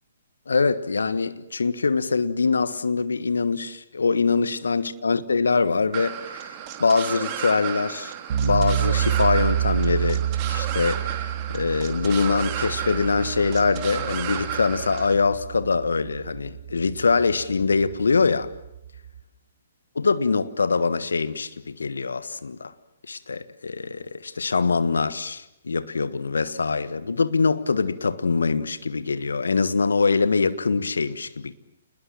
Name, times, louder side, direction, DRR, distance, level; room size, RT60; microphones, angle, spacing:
voice 1, 0.5-6.5 6.8-8.1 8.4-18.5 19.9-22.7 23.1-31.5, left 4 dB, 80° left, 1.5 m, -23 dB
sound 1, 5.9-15.1, right 10 dB, 35° right, 3.1 m, -33 dB
sound 2, 8.3-19.2, right 10 dB, 55° right, 4.1 m, -29 dB
29.5 x 21.0 x 7.6 m
figure-of-eight pair, 125°, 0 cm